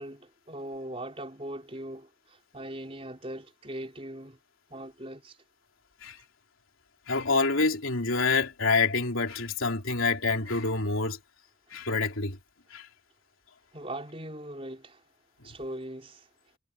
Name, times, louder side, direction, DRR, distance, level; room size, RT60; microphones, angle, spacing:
voice 1, 0.0-4.4 4.7-5.4 13.7-15.0 15.4-16.3, right 1 dB, 30° right, 4.5 m, -40 dB
voice 2, 7.1-11.2 11.7-12.4 12.7-12.9 15.4-15.5, left 3 dB, 85° left, 3.3 m, -27 dB
head